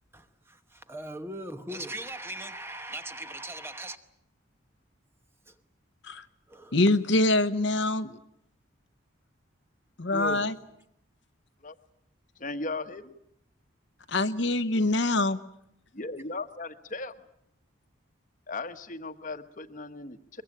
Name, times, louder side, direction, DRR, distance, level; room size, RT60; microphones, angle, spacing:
voice 1, 0.1-4.0 5.5-5.6 6.5-6.7 10.1-10.5, right 1 dB, 10° right, 1.1 m, -39 dB
voice 2, 6.7-8.2 10.0-10.6 14.1-15.4, left 2 dB, 60° left, 1.0 m, -25 dB
voice 3, 12.4-13.1 16.0-17.1 18.5-20.4, left 3 dB, 40° left, 1.2 m, -37 dB
22.5 x 22.0 x 8.9 m
head